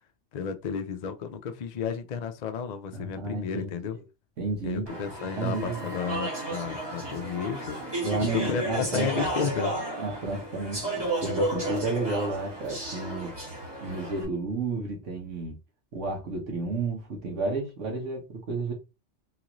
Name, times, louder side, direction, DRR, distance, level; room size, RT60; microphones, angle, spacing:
voice 1, 0.3-4.0 4.6-8.0 8.4-9.8, left 7 dB, 60° left, 0.4 m, -33 dB
voice 2, 2.9-3.7 4.4-4.9 5.2-5.9 8.0-9.1 10.0-13.3 13.8-15.5 15.9-18.7, right 3 dB, 75° right, 1.5 m, -31 dB
Speech / Chatter, 4.9-14.2, right 1 dB, 20° right, 1.2 m, -33 dB
3.8 x 2.5 x 3.0 m
omnidirectional pair, 1.3 m